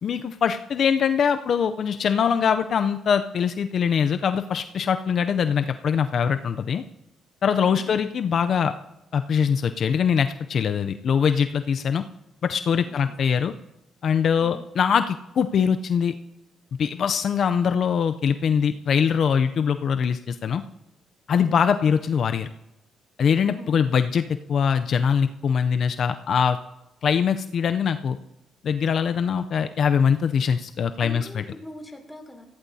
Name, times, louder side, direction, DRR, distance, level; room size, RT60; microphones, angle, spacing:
voice 1, 0.0-6.8 7.4-8.7 9.1-12.0 12.4-13.5 14.0-16.1 16.8-20.6 21.3-22.5 23.2-24.2 24.5-26.6 27.0-28.2 28.6-31.4, left 7 dB, 60° left, 9 dB, 0.5 m, -22 dB
voice 2, 7.6-8.0 12.8-13.1 14.4-14.6 21.3-21.6 23.4-24.0 31.0-32.4, left 1 dB, 5° left, 1 dB, 3.3 m, -43 dB
19.5 x 15.0 x 2.8 m, 0.93 s
cardioid pair, 90°, 0 cm